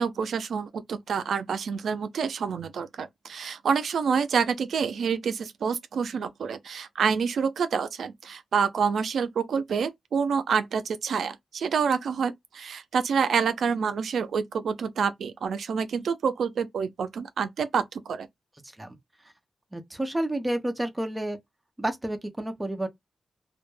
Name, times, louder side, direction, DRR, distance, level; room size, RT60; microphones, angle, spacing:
voice 1, 0.0-18.3, right 6 dB, 85° right, 0.3 m, -27 dB
voice 2, 19.7-21.4 21.8-22.9, right 1 dB, 10° right, 0.5 m, -30 dB
2.2 x 2.1 x 3.0 m
wide cardioid pair, 170°, 0 cm